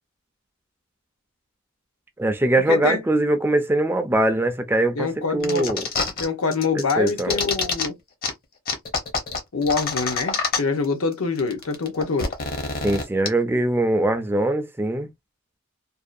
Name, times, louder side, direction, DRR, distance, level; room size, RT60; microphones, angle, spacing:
voice 1, 2.2-5.8 6.7-7.4 12.8-15.1, right 1 dB, 10° right, 0.3 m, -22 dB
voice 2, 2.7-3.0 5.0-5.7 6.2-8.0 9.5-12.3, left 4 dB, 80° left, 0.7 m, -25 dB
sound 1, 5.4-6.3 6.5-7.9 8.2-8.3 8.7-10.9 11.1-11.2 11.4-13.3, left 4 dB, 45° left, 0.7 m, -26 dB
2.6 x 2.1 x 2.4 m
head